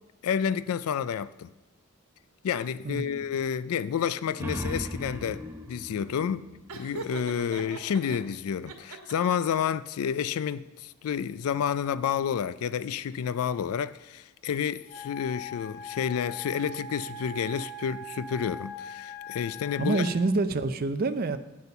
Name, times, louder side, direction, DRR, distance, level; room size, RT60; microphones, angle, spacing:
voice 1, 0.2-1.5 2.4-6.5 6.7-20.0, left 8 dB, 80° left, 0.3 m, -30 dB
voice 2, 2.8-3.2 19.8-21.4, right 3 dB, 40° right, 0.5 m, -27 dB
sound 1, 4.3-7.5, equal, 10° right, 0.8 m, -38 dB
Laughter, 6.7-8.2 8.7-9.5, right 3 dB, 85° right, 1.2 m, -40 dB
Wind instrument woodwind instrument, 14.9-20.2, left 2 dB, 50° left, 2.6 m, -41 dB
8.7 x 8.0 x 5.6 m
head